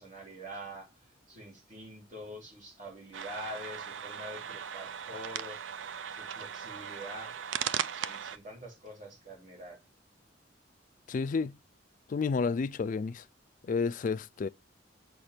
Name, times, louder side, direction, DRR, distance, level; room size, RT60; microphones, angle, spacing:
voice 1, 0.0-5.6 6.1-9.8, equal, 45° right, 3.1 m, -46 dB
sound 1, 3.1-8.4, right 8 dB, 75° right, 0.5 m, -38 dB
voice 2, 11.1-11.6 12.1-13.2 13.6-14.5, left 4 dB, 45° left, 0.3 m, -30 dB
6.6 x 4.4 x 5.0 m
head